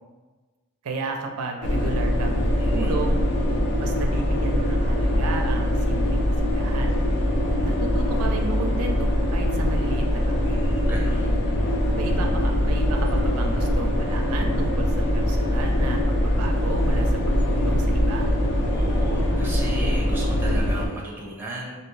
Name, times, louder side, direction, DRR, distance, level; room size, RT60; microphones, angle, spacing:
voice 1, 0.8-3.2 3.8-7.0 7.6-10.6 11.9-18.3, right 3 dB, 75° right, 3 dB, 0.4 m, -33 dB
sound 1, 1.6-20.9, equal, 50° left, 0.5 m, -22 dB
voice 2, 2.6-3.0 10.4-11.4 18.7-21.8, right 1 dB, 10° right, -4 dB, 0.5 m, -36 dB
3.3 x 2.7 x 3.1 m, 1.3 s
head